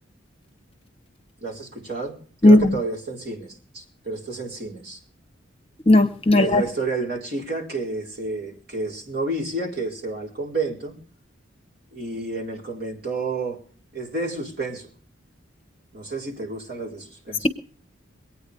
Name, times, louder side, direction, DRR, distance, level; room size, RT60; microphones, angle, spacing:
voice 1, 1.4-2.2 2.4-5.0 6.3-11.0 11.9-13.6 13.9-14.9 15.9-17.5, right 3 dB, 50° right, 4.7 m, -30 dB
voice 2, 5.9-6.6, left 2 dB, 30° left, 1.0 m, -14 dB
23.5 x 9.4 x 5.3 m
head